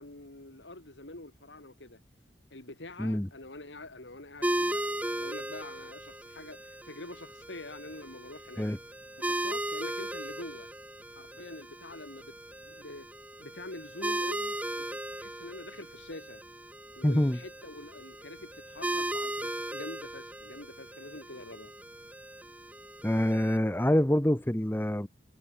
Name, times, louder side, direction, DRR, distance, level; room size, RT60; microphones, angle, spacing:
voice 1, 0.0-2.0 2.5-8.7 9.2-10.7 11.1-12.3 12.6-13.1 13.4-16.4 17.0-21.7, left 2 dB, 90° left, 3.6 m, -46 dB
voice 2, 3.0-3.3 8.6-8.8 17.0-17.4 23.0-25.1, equal, 10° left, 0.9 m, -26 dB
sound 1, 4.4-23.6, right 1 dB, 10° right, 3.7 m, -37 dB
head